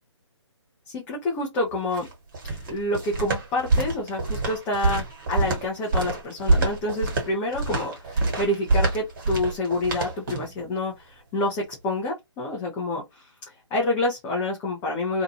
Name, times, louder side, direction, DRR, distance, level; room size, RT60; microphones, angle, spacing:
voice 1, 0.9-2.1 2.5-15.2, left 1 dB, 10° left, 0.3 m, -28 dB
sound 1, 1.7-10.6, right 2 dB, 45° right, 1.3 m, -26 dB
2.6 x 2.2 x 2.7 m
figure-of-eight pair, 145°, 16 cm